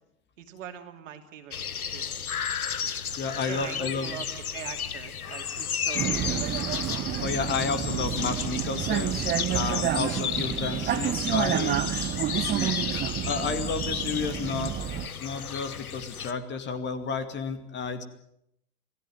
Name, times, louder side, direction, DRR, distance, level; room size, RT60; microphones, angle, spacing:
voice 1, 0.4-2.1 3.4-6.3, right 9 dB, 60° right, 5 dB, 2.9 m, -42 dB
sound 1, 1.5-16.3, left 7 dB, 75° left, 1.4 m, -33 dB
voice 2, 3.1-4.1 7.2-9.2 9.5-11.9 13.3-14.8 15.2-18.0, left 5 dB, 25° left, 9 dB, 2.3 m, -31 dB
Vehicle, 5.9-15.1, right 11 dB, 20° right, 1.1 m, -29 dB
27.5 x 18.0 x 7.9 m, 0.77 s
figure-of-eight pair, 95°, 44 cm